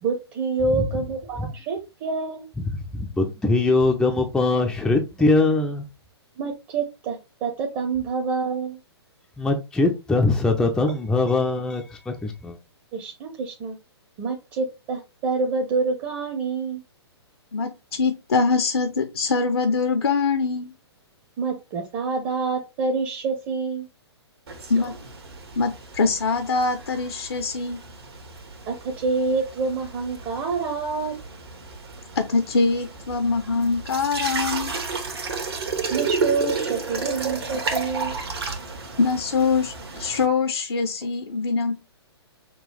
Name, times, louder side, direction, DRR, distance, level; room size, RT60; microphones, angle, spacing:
voice 1, 0.0-2.5 6.4-8.8 12.9-13.8 14.2-16.8 21.4-23.9 28.7-31.1 35.9-38.2, right 4 dB, 25° right, 0.8 m, -27 dB
voice 2, 2.9-5.8 9.4-12.6, left 3 dB, 5° left, 0.5 m, -22 dB
voice 3, 17.5-20.7 24.7-25.0 25.6-27.8 32.2-34.7 39.0-41.8, left 4 dB, 65° left, 0.7 m, -23 dB
sound 1, 24.5-40.3, right 4 dB, 65° right, 1.4 m, -32 dB
6.0 x 2.4 x 3.3 m
figure-of-eight pair, 120°, 14 cm